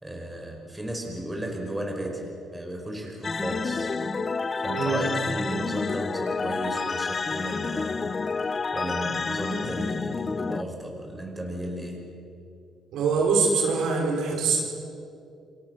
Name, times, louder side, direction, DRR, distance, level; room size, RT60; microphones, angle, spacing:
voice 1, 0.0-3.9 4.6-8.2 8.4-12.2, right 1 dB, 10° right, 1 dB, 5.5 m, -34 dB
sound 1, 3.2-10.6, left 4 dB, 35° left, 0.7 m, -29 dB
voice 2, 4.7-5.0 12.9-14.6, right 4 dB, 85° right, 0 dB, 5.4 m, -24 dB
29.0 x 23.0 x 6.6 m, 2.5 s
cardioid pair, 90°, 0 cm